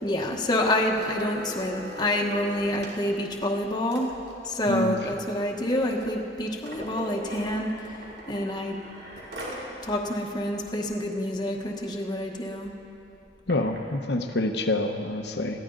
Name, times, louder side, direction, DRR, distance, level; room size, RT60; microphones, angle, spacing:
voice 1, 0.0-4.1 4.4-8.0 8.3-8.8 9.8-12.7, left 1 dB, 25° left, 0 dB, 1.2 m, -27 dB
sound 1, 0.9-9.7 10.1-10.2 10.5-10.8 11.3-11.4 11.6-11.9 12.6-13.8 14.5-14.6, equal, 65° right, 3.1 m, -41 dB
voice 2, 13.5-15.6, left 2 dB, 70° left, 5 dB, 1.0 m, -27 dB
21.5 x 15.5 x 4.0 m, 2.8 s
head